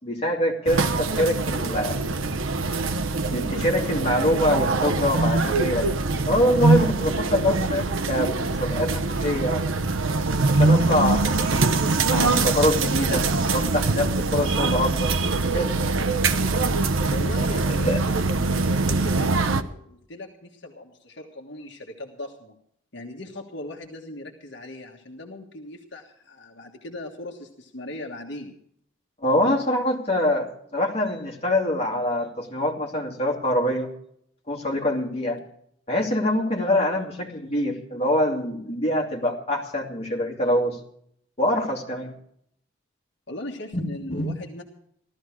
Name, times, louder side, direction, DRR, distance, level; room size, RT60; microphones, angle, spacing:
voice 1, 0.0-2.0 3.3-5.9 6.3-9.6 10.5-11.3 12.1-13.3 13.5-15.1 15.5-15.7 17.8-18.0 29.2-33.9 34.5-35.4 35.9-40.8 41.4-42.1 43.7-44.3, left 1 dB, 30° left, -1 dB, 2.5 m, -24 dB
sound 1, 0.7-19.6, right 3 dB, 85° right, 0.9 m, -23 dB
voice 2, 17.1-22.6 22.9-28.6 43.3-44.6, left 1 dB, 60° left, 1 dB, 1.7 m, -39 dB
16.0 x 13.5 x 4.8 m, 0.69 s
head